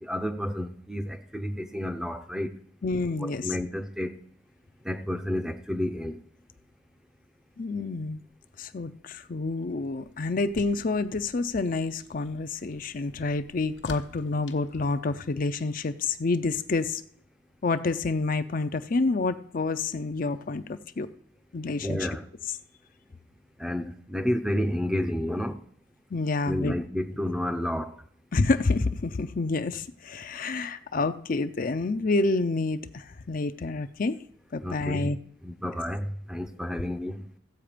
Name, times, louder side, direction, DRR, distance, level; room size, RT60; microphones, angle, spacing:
voice 1, 0.0-2.5 3.2-4.2 4.8-6.2 21.8-22.2 23.6-25.6 26.4-28.0 34.6-35.1 35.4-37.2, left 1 dB, 5° right, 0.6 m, -30 dB
voice 2, 2.8-3.5 7.6-8.2 8.6-17.0 17.6-21.1 21.5-22.1 26.1-26.7 28.3-34.2 34.5-35.2, left 3 dB, 45° left, 0.5 m, -28 dB
sound 1, 9.4-15.6, left 2 dB, 70° left, 1.2 m, -49 dB
15.0 x 8.0 x 5.0 m
head